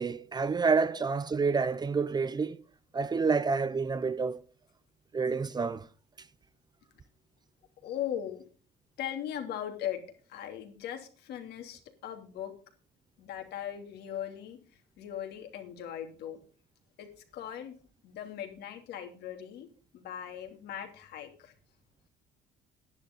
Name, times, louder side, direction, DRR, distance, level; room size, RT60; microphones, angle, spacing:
voice 1, 0.0-2.6 2.9-4.4 5.1-5.9, right 4 dB, 25° right, 0.6 m, -28 dB
voice 2, 7.8-8.4 9.0-10.0 10.3-12.5 13.2-14.6 15.0-16.4 17.0-17.1 17.3-17.7 18.0-19.7 19.9-21.5, left 10 dB, 75° left, 2.9 m, -39 dB
11.0 x 10.5 x 5.4 m
cardioid pair, 110°, 17 cm